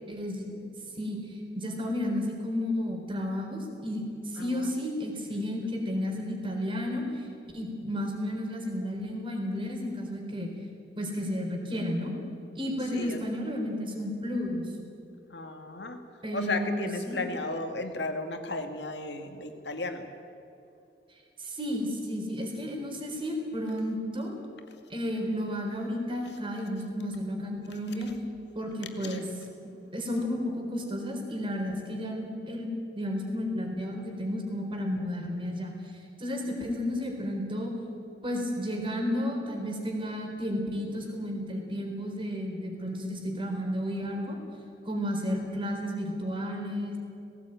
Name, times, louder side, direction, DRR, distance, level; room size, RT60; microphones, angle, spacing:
voice 1, 0.1-0.5 1.0-1.2 1.5-7.2 7.5-10.5 11.0-12.1 12.6-14.7 16.2-17.2 21.4-24.4 24.9-28.1 28.5-29.3 29.9-32.7 32.9-35.7 36.2-37.7 38.2-44.4 44.9-47.0, equal, 30° right, 2 dB, 4.0 m, -32 dB
voice 2, 4.4-4.7 12.9-13.2 15.3-16.0 16.3-20.1 28.7-29.2, left 2 dB, 75° left, 6 dB, 2.1 m, -35 dB
18.5 x 17.5 x 9.1 m, 2.7 s
head